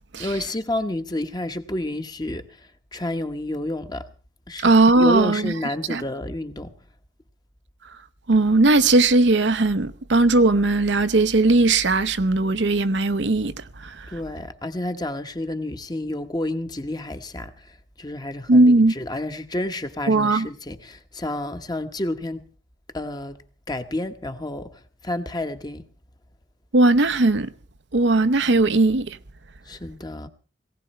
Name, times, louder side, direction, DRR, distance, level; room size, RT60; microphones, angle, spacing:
voice 1, 0.2-2.7 2.9-4.0 4.5-6.7 14.1-17.7 18.0-22.4 22.9-23.4 23.7-24.7 25.0-25.8 29.7-30.3, left 1 dB, 20° left, 1.1 m, -30 dB
voice 2, 4.6-5.5 5.9-6.0 8.3-13.5 13.8-14.1 18.5-18.9 20.1-20.5 26.7-27.5 27.9-29.2, right 2 dB, 65° right, 0.8 m, -18 dB
18.5 x 17.0 x 4.3 m
head